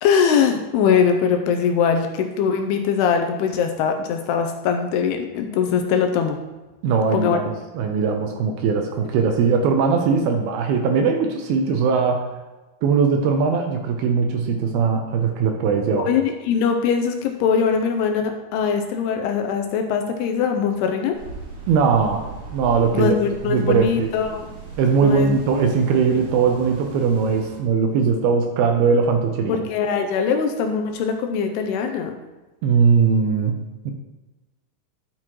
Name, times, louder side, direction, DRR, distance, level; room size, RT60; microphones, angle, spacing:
voice 1, 0.0-6.4 7.1-7.4 15.9-21.2 22.9-24.5 25.0-25.3 29.5-32.1, left 6 dB, 85° left, 5 dB, 2.5 m, -21 dB
voice 2, 6.8-12.3 12.8-16.1 21.7-22.2 22.5-23.2 23.5-24.1 24.8-29.6 32.6-33.9, right 5 dB, 80° right, 3 dB, 2.4 m, -20 dB
sound 1, 21.1-27.6, right 3 dB, 55° right, 2.9 m, -39 dB
12.5 x 6.0 x 3.0 m, 1.1 s
omnidirectional pair, 4.9 m